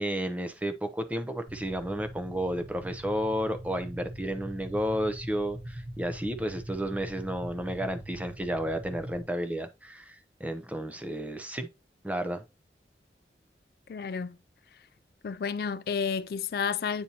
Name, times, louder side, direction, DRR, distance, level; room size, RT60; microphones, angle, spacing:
voice 1, 0.0-11.7 12.0-12.4, equal, 10° right, 0.6 m, -32 dB
sound 1, 1.5-9.2, right 1 dB, 40° right, 0.8 m, -42 dB
voice 2, 13.9-14.4 15.2-17.0, left 6 dB, 55° left, 0.3 m, -31 dB
8.6 x 4.2 x 2.8 m
head